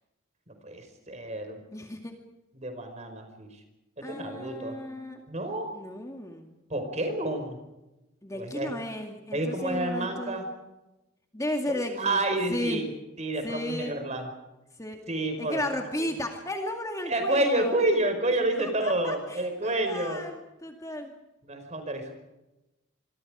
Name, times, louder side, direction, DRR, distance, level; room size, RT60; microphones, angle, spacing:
voice 1, 0.5-1.6 2.5-3.5 4.0-4.8 5.3-5.7 6.7-7.6 8.3-8.7 9.3-10.5 11.7-12.9 13.2-14.3 15.1-15.6 16.0-16.1 17.1-20.2 21.5-22.1, right 1 dB, 35° right, 6 dB, 5.1 m, -29 dB
voice 2, 1.7-2.2 4.0-5.2 5.7-6.6 8.2-10.4 11.3-12.2 12.5-12.8 13.4-14.0 14.8-15.0 15.4-17.8 18.6-21.1, left 1 dB, 15° left, 3 dB, 2.2 m, -34 dB
26.5 x 24.5 x 5.0 m, 0.98 s
head